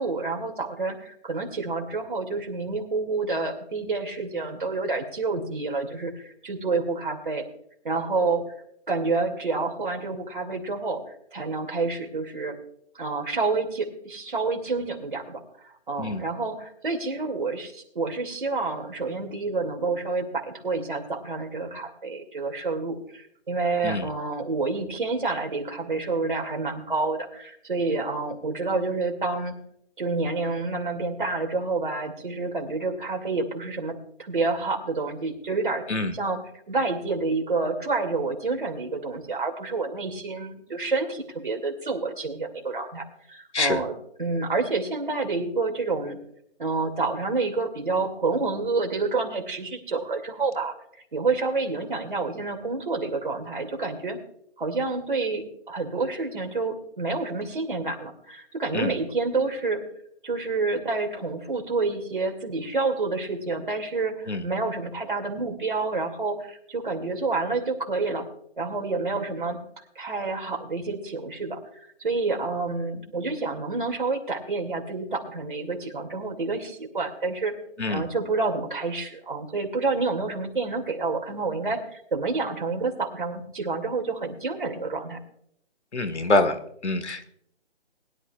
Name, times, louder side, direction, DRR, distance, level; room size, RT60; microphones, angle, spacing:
voice 1, 0.0-7.4 7.8-8.4 8.9-11.0 11.3-12.5 13.0-29.6 30.0-35.8 36.1-36.4 36.7-43.9 44.2-46.2 46.6-50.7 51.1-54.2 54.6-59.8 60.2-68.3 68.6-69.6 70.0-71.6 72.0-77.5 77.9-85.2, right 3 dB, 45° right, 2 dB, 2.3 m, -28 dB
voice 2, 85.9-86.6 86.8-87.3, left 2 dB, 80° left, 10 dB, 1.6 m, -25 dB
21.0 x 11.0 x 2.3 m, 0.72 s
hypercardioid pair, 175°, 34 cm